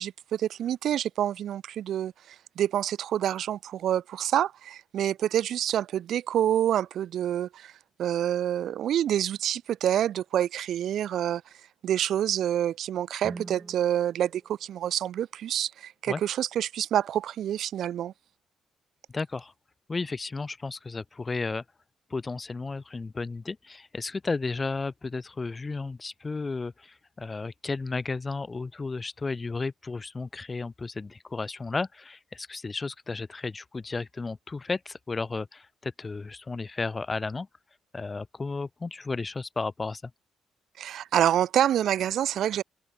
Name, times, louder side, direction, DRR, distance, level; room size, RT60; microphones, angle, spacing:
voice 1, 0.0-7.7 8.0-11.4 11.8-18.1 40.8-42.6, right 11 dB, 70° right, 0.3 m, -27 dB
Guitar, 13.2-15.8, right 3 dB, 25° right, 6.3 m, -46 dB
voice 2, 19.1-19.5 19.9-21.6 22.1-37.5 37.9-40.1, left 3 dB, 25° left, 0.4 m, -33 dB
cardioid pair, 90°, 0 cm